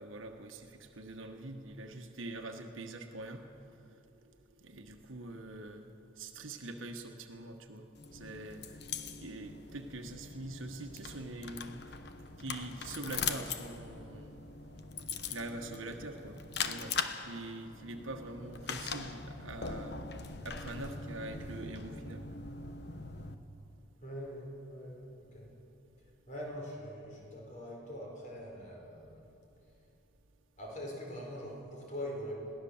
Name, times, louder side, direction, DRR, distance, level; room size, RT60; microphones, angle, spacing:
voice 1, 0.0-3.4 4.6-5.9 6.2-8.8 9.2-11.8 12.4-14.4 15.2-17.0 17.2-20.0 20.4-22.3, right 2 dB, 80° right, 3 dB, 1.4 m, -44 dB
sound 1, 8.0-23.3, left 5 dB, 55° left, 0.9 m, -41 dB
voice 2, 24.0-25.5 26.3-29.3 30.6-32.5, equal, 40° left, -1 dB, 4.4 m, -43 dB
22.0 x 16.5 x 7.2 m, 2.8 s
head